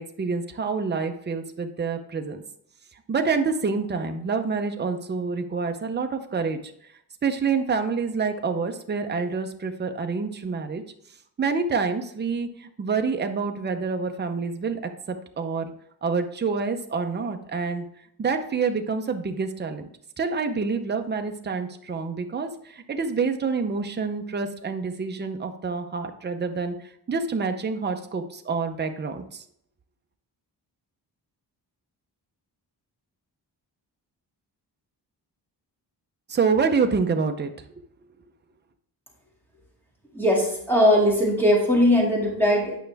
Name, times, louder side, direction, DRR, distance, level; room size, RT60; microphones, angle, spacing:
voice 1, 0.0-2.4 3.1-6.6 7.2-10.8 11.4-14.8 15.1-15.7 16.0-17.8 18.2-19.9 20.2-26.7 27.1-29.4 36.3-37.5, right 5 dB, 25° right, 5 dB, 0.6 m, -27 dB
voice 2, 40.1-42.7, equal, 5° left, -3 dB, 2.1 m, -20 dB
9.2 x 5.6 x 3.4 m, 0.71 s
wide cardioid pair, 170°, 41 cm